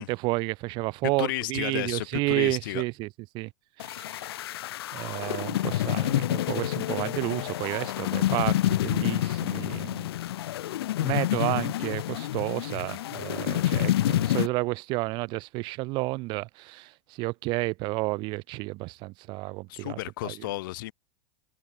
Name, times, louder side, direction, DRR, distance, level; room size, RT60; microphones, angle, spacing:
voice 1, 0.0-3.1 3.3-3.5 3.8-4.3 4.9-10.1 11.0-16.9 17.2-20.3, right 23 dB, 35° right, 3.3 m, -31 dB
voice 2, 1.0-2.8 19.7-20.9, left 19 dB, 55° left, 3.2 m, -32 dB
sound 1, 3.8-14.5, left 14 dB, 70° left, 1.6 m, -28 dB
supercardioid pair, 160°, 13 cm